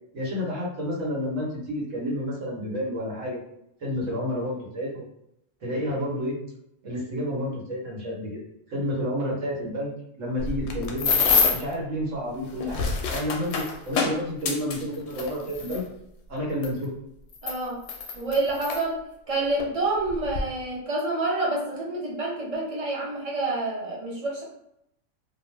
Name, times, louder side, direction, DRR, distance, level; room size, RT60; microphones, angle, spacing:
voice 1, 0.1-3.4 3.8-5.1 5.6-6.3 6.8-8.4 8.7-9.9 10.2-11.1 11.5-15.8 16.3-16.9, equal, 75° right, -4 dB, 1.3 m, -30 dB
sound 1, 10.4-11.7 12.5-15.8 16.6-16.7 17.3-18.8 19.6-19.7 20.1-20.4, left 5 dB, 65° left, 0.8 m, -26 dB
voice 2, 17.4-17.8 18.1-19.0 19.3-24.4, right 2 dB, 35° right, -4 dB, 0.7 m, -28 dB
2.6 x 2.2 x 3.1 m, 0.76 s
omnidirectional pair, 1.3 m